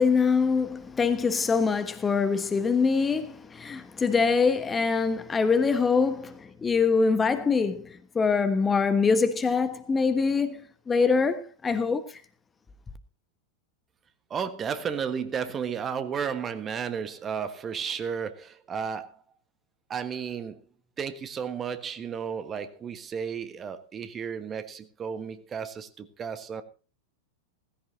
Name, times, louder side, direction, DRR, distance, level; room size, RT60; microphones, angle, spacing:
voice 1, 0.0-12.1, left 5 dB, 15° left, 1.3 m, -24 dB
voice 2, 14.3-19.2 19.9-20.6 21.0-26.6, right 7 dB, 25° right, 1.4 m, -33 dB
17.0 x 15.5 x 2.8 m
figure-of-eight pair, 90°, 0 cm